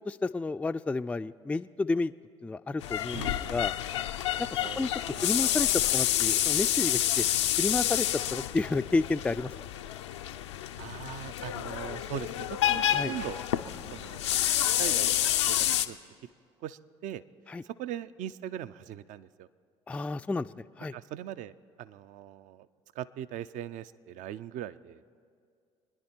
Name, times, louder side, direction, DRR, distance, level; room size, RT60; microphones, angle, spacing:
voice 1, 0.1-2.1 2.4-3.2 3.5-3.7 4.5-4.9 5.2-7.2 7.6-9.5 12.9-13.1 17.5-17.6 19.9-20.9, left 3 dB, 10° left, 10 dB, 0.3 m, -31 dB
sound 1, 2.8-15.9, left 12 dB, 85° left, 0.5 m, -29 dB
voice 2, 4.6-5.3 10.8-13.4 13.9-14.4 14.8-16.1 16.6-17.2 17.6-19.5 20.9-22.7 22.9-25.0, right 11 dB, 60° right, 15 dB, 0.5 m, -40 dB
25.0 x 10.5 x 4.4 m, 2.2 s
hypercardioid pair, 60°, 15 cm